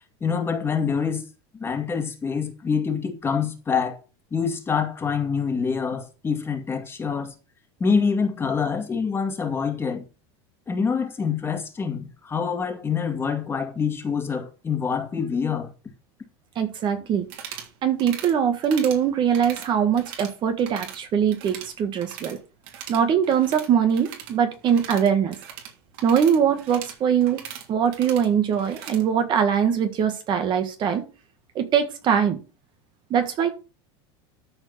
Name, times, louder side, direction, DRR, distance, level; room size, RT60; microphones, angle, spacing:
voice 1, 0.2-1.3 1.5-4.0 4.3-7.3 7.8-10.0 10.7-15.7, left 6 dB, 15° left, 2.1 m, -26 dB
voice 2, 16.5-17.3 17.8-22.4 22.9-25.4 26.0-27.4 27.7-31.0 31.5-32.4 33.1-33.5, right 8 dB, 35° right, 1.6 m, -22 dB
sound 1, 17.2-17.7 18.0-18.3 18.6-19.0 19.3-20.3 20.6-21.0 21.3-22.4 22.6-29.0, right 9 dB, 65° right, 3.2 m, -40 dB
13.0 x 4.5 x 5.7 m
supercardioid pair, 145°, 14 cm